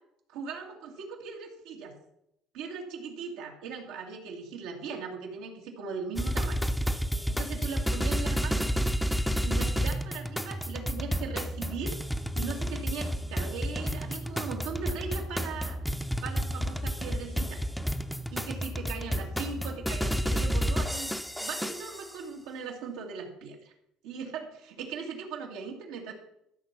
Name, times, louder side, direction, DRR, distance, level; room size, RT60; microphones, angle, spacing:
voice 1, 0.3-2.0 2.5-6.9 7.3-8.7 9.4-12.0 12.4-15.8 16.2-17.6 18.3-23.7 24.0-26.1, right 5 dB, 85° right, 0 dB, 2.1 m, -39 dB
sound 1, 6.2-22.1, equal, ahead, 0.7 m, -31 dB
13.0 x 6.0 x 5.8 m, 0.78 s
cardioid pair, 105°, 0 cm